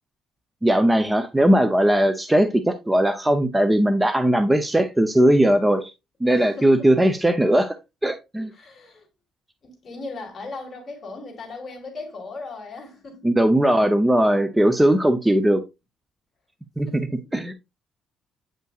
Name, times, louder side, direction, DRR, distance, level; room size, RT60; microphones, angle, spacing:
voice 1, 0.6-5.9 6.2-7.8 8.0-8.5 13.2-15.6 16.8-17.0 17.3-17.5, right 1 dB, 10° right, 0.5 m, -19 dB
voice 2, 6.3-6.9 8.5-9.1 9.6-13.3 16.8-17.2, left 3 dB, 30° left, 2.7 m, -37 dB
8.7 x 5.5 x 2.3 m
cardioid pair, 145°, 0 cm